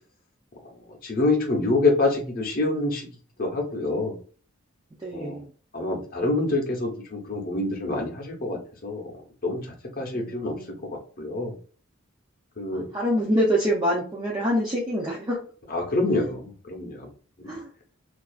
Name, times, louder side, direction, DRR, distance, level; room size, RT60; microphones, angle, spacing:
voice 1, 1.0-3.1 3.4-4.2 5.1-5.4 5.7-9.0 9.4-9.7 10.0-10.5 10.9-11.5 12.6-12.8 15.7-17.1 17.5-17.6, left 2 dB, 45° left, 2 dB, 0.7 m, -26 dB
voice 2, 5.0-5.5 10.1-10.8 12.7-15.4 17.5-17.7, equal, 20° right, -4 dB, 0.5 m, -26 dB
2.4 x 2.3 x 2.3 m, 0.41 s
head